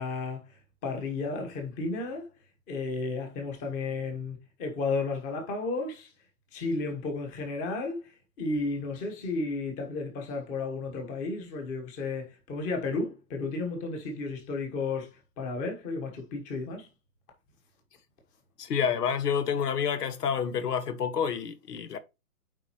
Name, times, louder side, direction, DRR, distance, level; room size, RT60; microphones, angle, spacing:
voice 1, 0.0-2.3 2.7-6.1 6.5-16.9, left 3 dB, 15° left, 1.2 m, -33 dB
voice 2, 18.6-22.0, left 7 dB, 90° left, 1.1 m, -28 dB
8.9 x 4.1 x 3.0 m
hypercardioid pair, 165°, 46 cm